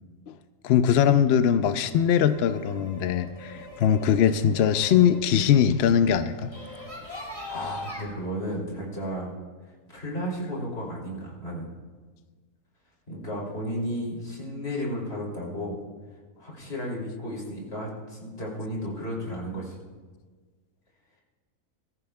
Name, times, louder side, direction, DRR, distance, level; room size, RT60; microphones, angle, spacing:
voice 1, 0.6-6.5, left 9 dB, 75° left, 11 dB, 0.5 m, -21 dB
sound 1, 1.6-8.0, left 2 dB, 20° left, 1.8 m, -42 dB
voice 2, 7.0-9.3 9.9-11.7 13.1-15.8 16.4-19.8, equal, 45° left, -3 dB, 3.1 m, -33 dB
21.0 x 14.0 x 2.2 m, 1.4 s
omnidirectional pair, 1.6 m